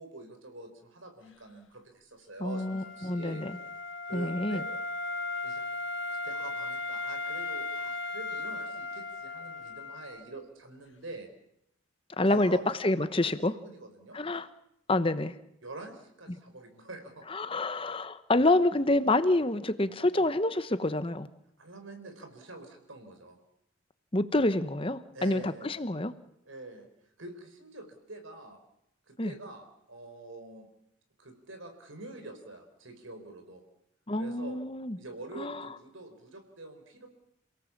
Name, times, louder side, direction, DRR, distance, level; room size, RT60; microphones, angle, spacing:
voice 1, 0.0-3.4 4.1-4.6 5.4-5.6 6.1-11.3 12.3-12.7 13.5-14.2 15.6-17.2 21.6-23.4 25.1-25.8 26.4-26.9 27.2-28.6 29.1-30.7 31.2-33.6 34.2-34.6 35.0-37.1, right 2 dB, 75° right, 6 dB, 4.5 m, -46 dB
voice 2, 2.4-3.6 4.1-4.6 12.2-13.5 14.1-14.5 14.9-15.3 17.3-21.3 24.1-26.1 29.2-29.3 34.1-35.0 35.4-35.7, left 2 dB, 25° left, 12 dB, 1.0 m, -27 dB
Wind instrument woodwind instrument, 2.5-10.3, left 3 dB, 65° left, 2.2 m, -37 dB
29.0 x 17.5 x 7.3 m, 0.79 s
head